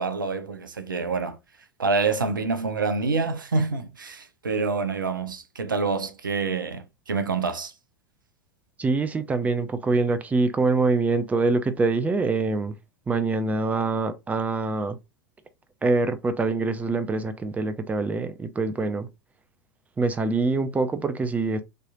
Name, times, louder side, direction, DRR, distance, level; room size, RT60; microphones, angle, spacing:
voice 1, 0.0-1.4 1.8-7.7, right 4 dB, 80° right, 0.8 m, -27 dB
voice 2, 8.8-12.8 13.1-15.0 15.8-19.1 20.0-21.6, right 3 dB, 15° right, 0.7 m, -24 dB
6.6 x 3.2 x 2.5 m
figure-of-eight pair, 90°, 11 cm